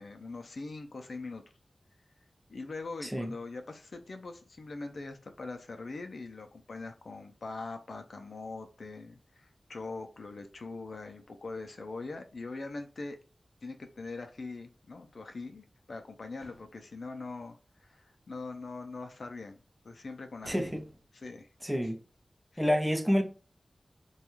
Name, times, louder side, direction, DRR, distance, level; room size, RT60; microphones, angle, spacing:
voice 1, 0.0-1.4 2.5-13.2 13.6-20.7 21.1-21.5 21.8-21.9 22.5-22.7, left 3 dB, 75° left, 0.4 m, -42 dB
voice 2, 3.0-3.3 20.5-20.8 21.6-22.0 22.6-23.2, equal, ahead, 0.5 m, -28 dB
sound 1, 16.4-16.9 20.4-21.2, right 1 dB, 85° right, 1.0 m, -52 dB
2.3 x 2.2 x 2.9 m
wide cardioid pair, 55°, 0 cm